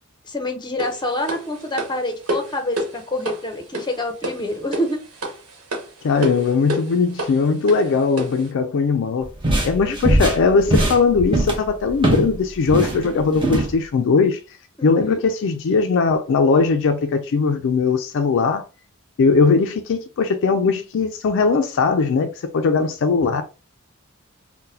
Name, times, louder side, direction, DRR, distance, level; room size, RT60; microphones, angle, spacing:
voice 1, 0.2-5.0 9.8-10.3 14.8-15.2 22.8-22.9, left 1 dB, 20° left, 0.7 m, -27 dB
sound 1, 0.8-8.5, right 1 dB, 85° right, 1.0 m, -30 dB
voice 2, 6.0-9.3 9.6-14.4 14.8-18.6 19.2-23.4, left 4 dB, 60° left, 0.4 m, -19 dB
sound 2, 9.2-12.3 12.6-13.7, right 1 dB, 25° right, 0.8 m, -20 dB
3.8 x 2.1 x 2.7 m
head